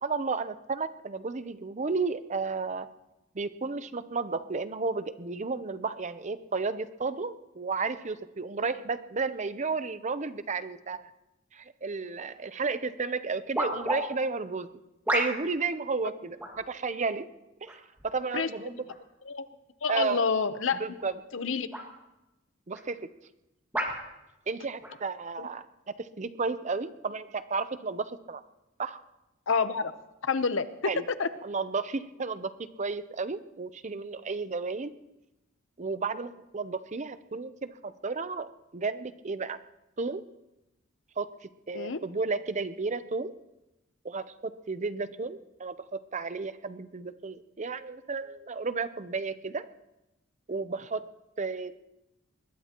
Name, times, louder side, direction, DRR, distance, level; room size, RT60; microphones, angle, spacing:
voice 1, 0.0-2.9 3.3-11.1 11.5-14.7 15.1-17.3 17.6-17.7 18.0-18.8 19.9-20.3 20.8-21.2 22.7-23.0 24.5-25.7 26.0-28.4 28.8-29.0 30.9-31.0 31.4-32.5 32.8-34.9 35.8-39.6 40.0-40.2 41.2-41.3 41.7-43.3 44.0-49.7 50.5-51.0 51.4-51.8, right 4 dB, 35° right, 12 dB, 0.6 m, -33 dB
sound 1, 12.6-12.7 13.5-14.0 15.0-15.6 16.4-16.7 17.7-18.1 18.9-19.0 20.9-21.1 21.7-21.9 22.7-22.8 23.7-24.0 24.8-25.0, equal, 10° right, 2.0 m, -31 dB
voice 2, 18.3-18.8 19.3-19.5 19.8-20.8 21.3-21.7 25.4-25.5 29.5-29.9 30.2-30.9 31.2-31.3 41.7-42.0, left 5 dB, 70° left, 12 dB, 0.8 m, -28 dB
22.5 x 20.5 x 3.0 m, 0.96 s
head